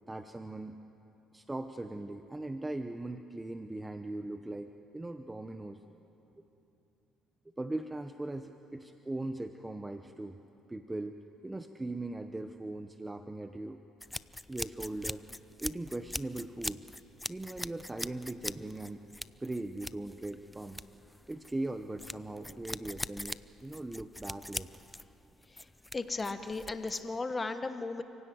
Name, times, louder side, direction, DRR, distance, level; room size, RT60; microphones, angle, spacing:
voice 1, 0.1-0.8 1.3-5.8 6.4-6.5 7.6-10.4 10.7-11.1 11.4-13.8 14.5-15.2 15.6-16.8 17.3-19.0 19.4-20.8 21.3-24.7, right 2 dB, 10° right, 7 dB, 0.9 m, -39 dB
sound 1, 14.0-27.2, left 1 dB, 5° left, 0.5 m, -42 dB
voice 2, 25.9-28.0, left 3 dB, 20° left, 9 dB, 1.1 m, -35 dB
29.0 x 16.5 x 9.4 m, 2.9 s
cardioid pair, 105°, 0 cm